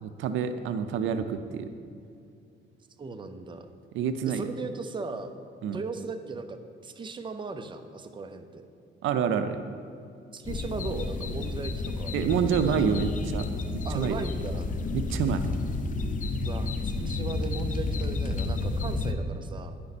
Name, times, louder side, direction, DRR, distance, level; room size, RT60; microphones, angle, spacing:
voice 1, 0.0-1.7 3.9-4.4 5.6-5.8 9.0-9.6 12.1-13.5 13.9-14.2 14.9-15.4, right 7 dB, 80° right, 9 dB, 0.5 m, -27 dB
voice 2, 3.0-3.7 4.2-5.3 5.7-8.7 10.3-12.9 13.8-14.7 16.4-19.8, right 3 dB, 25° right, 8 dB, 0.5 m, -37 dB
sound 1, 10.4-19.1, left 3 dB, 40° left, 0.6 m, -31 dB
9.9 x 5.2 x 4.1 m, 2.4 s
cardioid pair, 90°, 20 cm